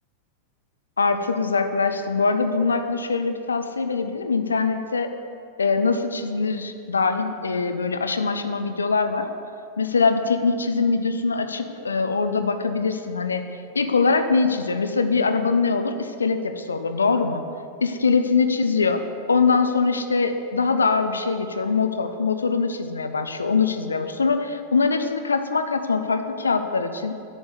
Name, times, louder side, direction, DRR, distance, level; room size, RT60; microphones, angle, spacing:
voice 1, 1.0-5.1 5.6-9.3 9.8-17.4 17.8-27.1, left 4 dB, 75° left, 8 dB, 0.9 m, -23 dB
10.5 x 8.1 x 9.9 m, 2.5 s
figure-of-eight pair, 90°, 0 cm